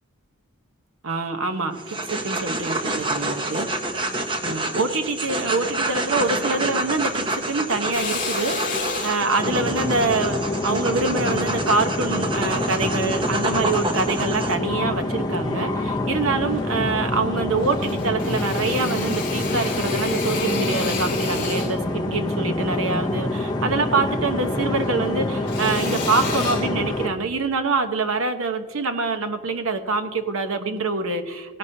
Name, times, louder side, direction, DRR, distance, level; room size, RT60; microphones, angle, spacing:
voice 1, 1.0-3.7 4.4-31.6, right 3 dB, 70° right, 7 dB, 1.0 m, -25 dB
sound 1, 1.7-14.5, right 2 dB, 20° right, 0.8 m, -28 dB
Drill, 7.9-12.5 13.0-14.2 14.6-15.6 15.9-16.0 16.3-17.3 17.6-24.2 24.5-27.4, left 3 dB, 40° left, 2.1 m, -32 dB
sound 2, 9.4-27.1, left 1 dB, 20° left, 0.7 m, -26 dB
18.0 x 11.0 x 2.8 m, 1.2 s
head